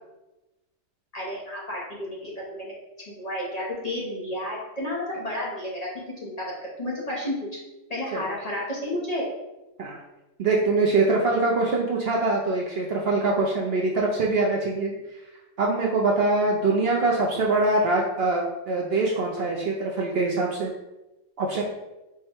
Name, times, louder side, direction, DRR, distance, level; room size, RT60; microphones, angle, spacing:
voice 1, 1.1-2.7 3.1-5.9 6.2-6.5 6.8-7.4 7.9-9.3, left 1 dB, 35° left, -5 dB, 0.8 m, -31 dB
voice 2, 10.4-14.9 15.6-20.7 21.4-21.6, right 3 dB, 60° right, -2 dB, 0.7 m, -23 dB
4.7 x 2.2 x 4.3 m, 1.0 s
omnidirectional pair, 1.4 m